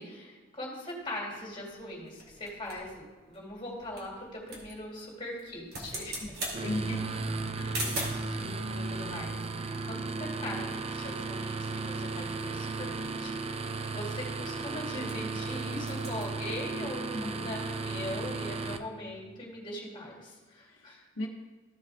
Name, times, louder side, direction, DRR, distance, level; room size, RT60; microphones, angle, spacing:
voice 1, 0.0-6.8 7.8-9.3 9.6-21.0, left 1 dB, 25° left, -2 dB, 2.4 m, -41 dB
sound 1, 0.9-8.3 9.1-10.8 11.0-11.1 11.4-11.7 12.1-15.4 15.7-16.3, right 1 dB, 55° right, 2.2 m, -43 dB
sound 2, 6.5-18.8, right 3 dB, 30° right, 0.5 m, -35 dB
voice 2, 6.6-7.2 7.6-7.8 17.1-17.5 20.6-21.3, left 1 dB, 80° left, 0 dB, 1.0 m, -37 dB
14.0 x 5.0 x 3.5 m, 1.4 s
head